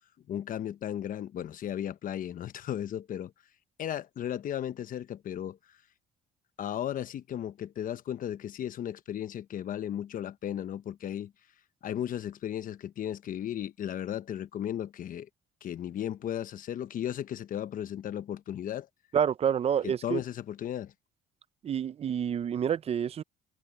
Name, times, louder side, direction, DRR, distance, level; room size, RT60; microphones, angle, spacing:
voice 1, 0.3-3.3 3.8-5.6 6.6-11.3 11.8-15.3 15.6-18.9 19.8-20.9, left 10 dB, 55° left, 1.0 m, -35 dB
voice 2, 19.1-20.2 21.6-23.2, right 8 dB, 35° right, 0.5 m, -28 dB
cardioid pair, 110°, 17 cm